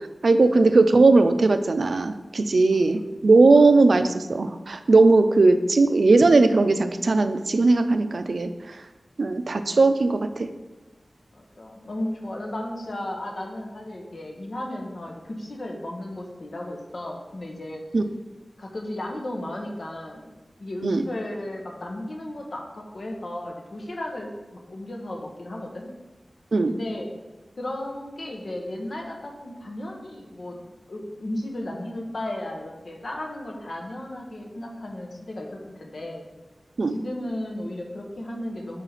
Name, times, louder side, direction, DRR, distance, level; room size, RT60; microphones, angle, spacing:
voice 1, 0.2-8.5 9.2-10.5 17.9-18.0 20.8-21.0 26.5-26.7 36.8-36.9, right 3 dB, 75° right, 9 dB, 0.4 m, -18 dB
voice 2, 2.7-3.0 3.5-3.6 11.3-17.8 18.6-20.3 20.6-25.9 26.7-27.1 27.6-30.6 30.9-36.3 36.9-38.8, left 1 dB, 70° left, 0 dB, 1.2 m, -34 dB
5.9 x 4.9 x 4.0 m, 1.2 s
wide cardioid pair, 60°, 0 cm